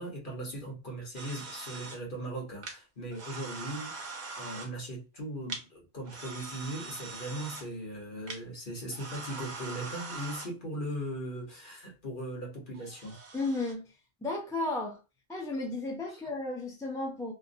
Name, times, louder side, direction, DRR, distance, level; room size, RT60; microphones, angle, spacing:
voice 1, 0.0-13.2, right 1 dB, 45° left, 1.2 m, -39 dB
sound 1, 1.1-2.0 2.6-2.8 3.1-4.7 5.5-5.6 6.1-7.7 8.3-8.4 8.9-10.5 12.7-13.7, right 3 dB, 45° right, 0.7 m, -42 dB
voice 2, 13.3-13.8 14.2-15.0 15.3-17.3, left 2 dB, 5° left, 0.4 m, -33 dB
2.9 x 2.1 x 2.6 m
omnidirectional pair, 1.3 m